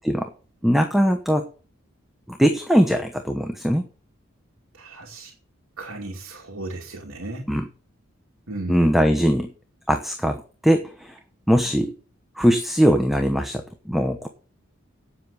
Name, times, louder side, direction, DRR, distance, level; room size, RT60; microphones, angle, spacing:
voice 1, 0.6-1.5 2.3-3.9 7.5-7.6 8.7-9.5 9.9-11.2 11.5-11.9 12.4-14.3, equal, ahead, 6 dB, 1.0 m, -20 dB
voice 2, 4.7-5.3 5.8-7.5 8.5-8.9, right 2 dB, 90° right, 0 dB, 2.5 m, -35 dB
9.4 x 7.7 x 8.2 m, 0.38 s
head